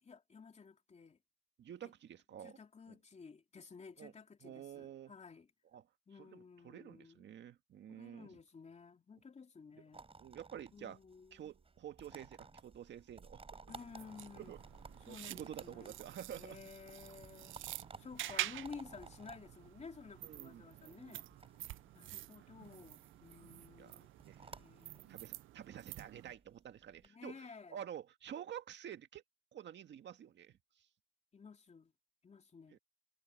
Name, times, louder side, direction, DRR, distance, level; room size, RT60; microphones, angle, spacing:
voice 1, 0.0-1.2 1.8-1.9 2.4-5.5 6.1-7.3 7.9-10.1 10.7-11.5 13.7-14.6 15.1-16.0 16.3-17.5 18.0-21.3 21.9-24.1 24.6-25.2 27.0-27.8 31.3-31.9 32.2-32.8, left 5 dB, 35° left, 3.0 m, -54 dB
voice 2, 1.6-2.6 2.9-3.0 4.0-4.1 4.4-5.1 5.7-5.8 6.2-8.3 10.2-11.0 11.3-13.7 14.3-14.6 15.1-16.6 20.2-20.7 21.0-21.3 23.8-24.6 25.1-29.2 29.5-30.6 32.7-32.8, right 10 dB, 65° right, 1.8 m, -50 dB
sound 1, 9.9-27.1, right 4 dB, 30° right, 6.3 m, -57 dB
sound 2, 13.7-26.4, right 15 dB, 80° right, 0.6 m, -48 dB
cardioid pair, 90°, 20 cm